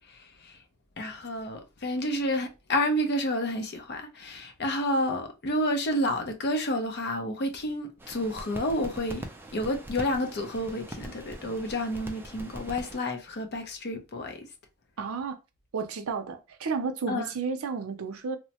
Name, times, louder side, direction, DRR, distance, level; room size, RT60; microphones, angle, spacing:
voice 1, 0.1-0.6 1.0-9.2 9.5-14.5 17.1-17.3, left 1 dB, 50° left, 0.6 m, -30 dB
sound 1, 8.0-13.0, right 1 dB, 10° right, 0.4 m, -42 dB
voice 2, 15.0-15.4 15.7-18.4, right 5 dB, 70° right, 0.5 m, -32 dB
3.1 x 2.1 x 2.8 m
head